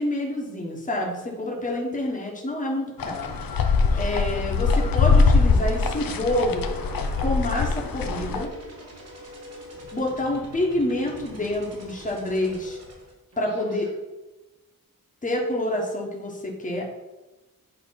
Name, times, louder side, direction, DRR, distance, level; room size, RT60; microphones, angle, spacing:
voice 1, 0.0-3.3 3.9-6.7 7.2-8.5 9.9-12.8 13.4-13.9 15.2-16.9, left 1 dB, 20° left, -1 dB, 1.3 m, -27 dB
sound 1, 3.0-8.4, left 4 dB, 70° left, 0.7 m, -22 dB
sound 2, 4.5-13.9, right 2 dB, 45° right, 1.9 m, -45 dB
8.9 x 3.2 x 5.7 m, 1.1 s
wide cardioid pair, 150°, 36 cm